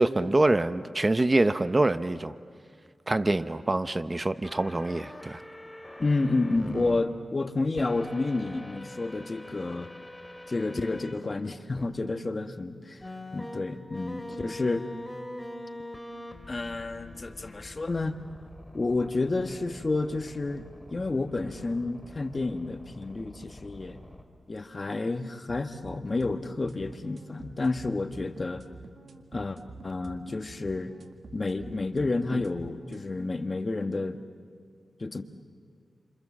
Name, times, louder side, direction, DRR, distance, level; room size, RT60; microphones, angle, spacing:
voice 1, 0.0-2.3 3.1-5.4, right 2 dB, 30° right, 12 dB, 0.7 m, -25 dB
sound 1, 4.4-7.0 7.8-11.2 11.8-11.9 13.0-24.2, left 1 dB, 10° left, 2.8 m, -44 dB
voice 2, 6.0-9.9 10.5-13.0 13.3-14.9 16.5-18.1 18.7-24.0 24.5-28.6 29.3-30.9 31.3-34.2 35.0-35.2, left 3 dB, 40° left, 8 dB, 1.4 m, -30 dB
sound 2, 25.5-33.1, right 3 dB, 70° right, 1.8 m, -47 dB
29.0 x 27.5 x 7.4 m, 2.1 s
cardioid pair, 70°, 0 cm